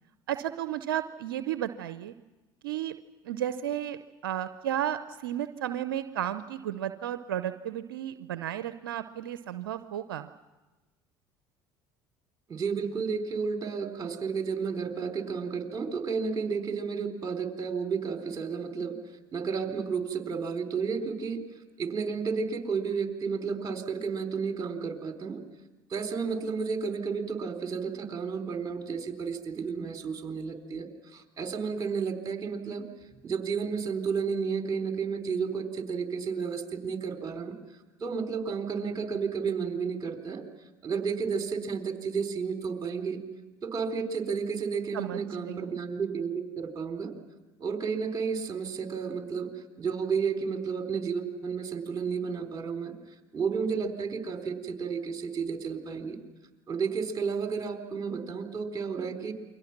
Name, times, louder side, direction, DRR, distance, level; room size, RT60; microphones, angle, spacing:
voice 1, 0.3-2.1 2.6-2.9 3.2-10.3 44.9-45.8, right 11 dB, 85° right, 11 dB, 0.7 m, -33 dB
voice 2, 12.5-19.0 19.3-21.4 21.8-25.4 25.9-32.8 33.2-37.5 38.0-40.4 40.8-43.2 43.6-47.1 47.6-49.5 49.8-52.9 53.3-56.2 56.7-59.3, right 5 dB, 30° right, 5 dB, 3.8 m, -32 dB
29.0 x 23.5 x 6.0 m, 1.1 s
hypercardioid pair, 65°, 11 cm